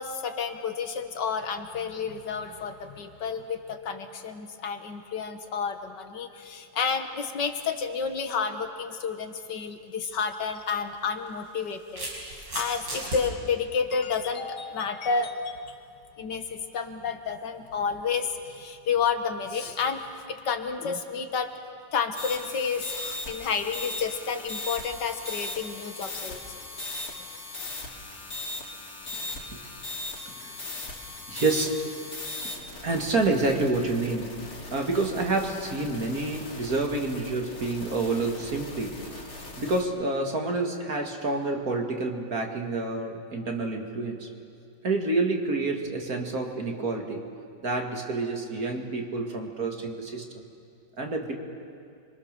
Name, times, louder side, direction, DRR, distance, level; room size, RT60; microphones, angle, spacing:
voice 1, 0.0-15.7 16.2-20.0 20.3-21.5 21.9-26.4 27.1-27.2 27.6-27.7, left 5 dB, 70° left, 7 dB, 1.9 m, -30 dB
sound 1, 10.0-10.2 11.3-13.2, right 1 dB, 75° right, 6.3 m, -36 dB
sound 2, 22.2-39.8, left 2 dB, 50° left, 3.0 m, -39 dB
voice 2, 29.1-29.9 30.2-30.6 31.3-31.9 32.4-44.3 44.8-47.2 47.6-50.2 51.0-51.3, right 3 dB, 50° right, 2 dB, 2.5 m, -29 dB
29.0 x 24.0 x 6.8 m, 2.5 s
omnidirectional pair, 2.0 m